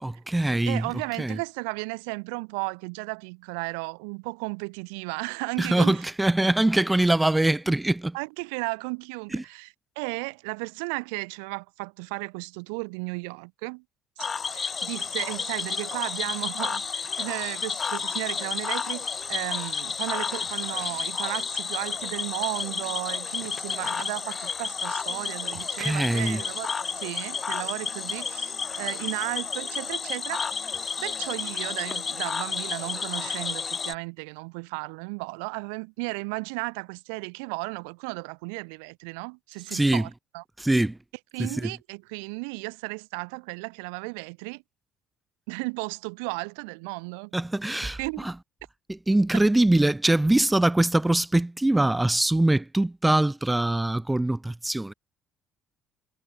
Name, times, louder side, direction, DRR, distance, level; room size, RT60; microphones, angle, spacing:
voice 1, 0.0-0.9 1.2-1.4 5.6-8.2 9.3-9.4 25.8-26.4 39.7-40.1 40.6-41.0 41.4-41.7 47.3-48.3 48.9-54.9, right 1 dB, 10° right, 0.6 m, -23 dB
voice 2, 0.7-6.0 8.1-9.7 10.0-13.8 14.2-30.4 31.0-40.4 41.3-44.6 45.5-47.3 48.0-48.3, right 36 dB, 80° right, 0.4 m, -34 dB
Cricket / Frog, 14.2-33.9, left 5 dB, 35° left, 0.8 m, -31 dB
hypercardioid pair, 65°, 0 cm